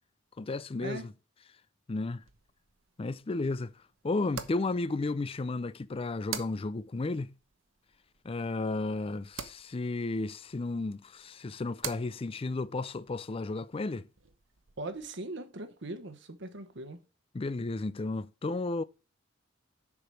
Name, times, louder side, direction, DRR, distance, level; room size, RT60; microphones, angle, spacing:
voice 1, 0.4-1.1 1.9-2.2 3.0-3.7 4.0-7.3 8.2-14.1 17.3-18.8, left 3 dB, 30° left, 0.4 m, -33 dB
sound 1, 2.2-15.1, right 8 dB, 85° right, 1.0 m, -48 dB
voice 2, 14.8-17.0, right 2 dB, 65° right, 1.2 m, -40 dB
7.2 x 5.0 x 6.3 m
head